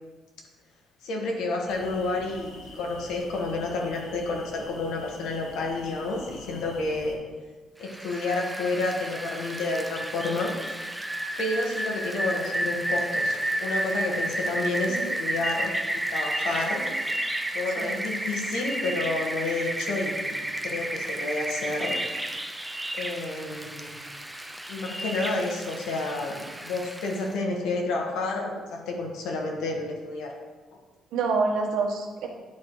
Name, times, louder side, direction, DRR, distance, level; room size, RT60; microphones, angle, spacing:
voice 1, 1.0-7.2 7.8-10.5 11.4-15.7 16.1-16.8 17.5-22.0 22.9-24.0 24.7-30.3, left 2 dB, 80° left, 1 dB, 1.4 m, -30 dB
sound 1, 1.7-7.2, left 1 dB, 65° left, 1.6 m, -45 dB
Rain, 7.8-27.3, right 1 dB, 5° right, 0.4 m, -31 dB
voice 2, 31.1-32.3, right 4 dB, 75° right, 1 dB, 1.2 m, -27 dB
10.5 x 3.7 x 4.7 m, 1.3 s
cardioid pair, 175°, 0 cm